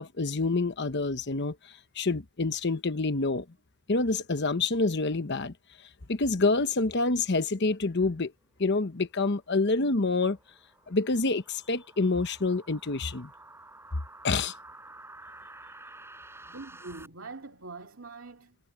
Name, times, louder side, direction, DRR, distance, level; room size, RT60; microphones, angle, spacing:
voice 1, 0.0-1.5 2.0-3.4 3.9-5.5 6.1-8.3 8.6-10.4 10.9-13.3 14.2-14.5, left 3 dB, 55° left, 1.0 m, -27 dB
sound 1, 8.4-17.1, right 2 dB, 10° right, 4.8 m, -51 dB
voice 2, 16.5-18.6, right 3 dB, 70° right, 2.6 m, -43 dB
head